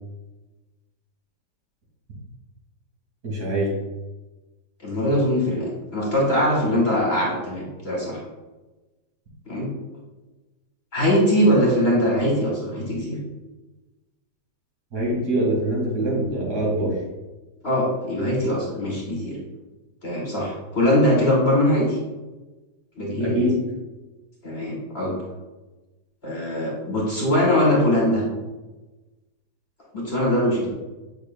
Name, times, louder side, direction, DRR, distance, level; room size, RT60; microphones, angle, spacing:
voice 1, 3.2-3.7 14.9-17.0 23.2-23.6 30.6-30.7, right 1 dB, 60° right, -5 dB, 2.8 m, -24 dB
voice 2, 4.8-8.2 9.4-9.7 10.9-13.2 17.6-19.4 20.0-22.0 23.0-23.3 24.4-25.1 26.2-28.2 29.9-30.7, equal, 35° left, -4 dB, 1.6 m, -21 dB
7.8 x 5.5 x 2.2 m, 1.1 s
omnidirectional pair, 1.9 m